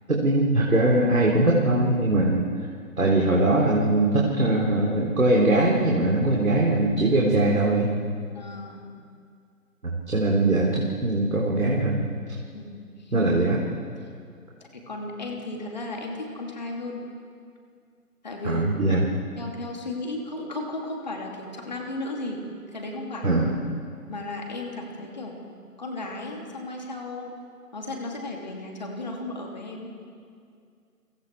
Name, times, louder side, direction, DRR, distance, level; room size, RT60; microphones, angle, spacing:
voice 1, 0.1-2.5 3.0-7.9 9.8-12.0 13.1-13.6 18.4-19.1 23.2-23.5, right 2 dB, 60° right, -3 dB, 3.8 m, -21 dB
voice 2, 8.3-8.9 12.5-13.1 14.7-17.1 18.2-18.7 19.4-22.4 22.7-23.3 24.1-25.4 25.8-27.4 27.7-29.9, left 2 dB, 30° left, 1 dB, 2.9 m, -35 dB
30.0 x 24.0 x 4.7 m, 2.3 s
figure-of-eight pair, 165°, 46 cm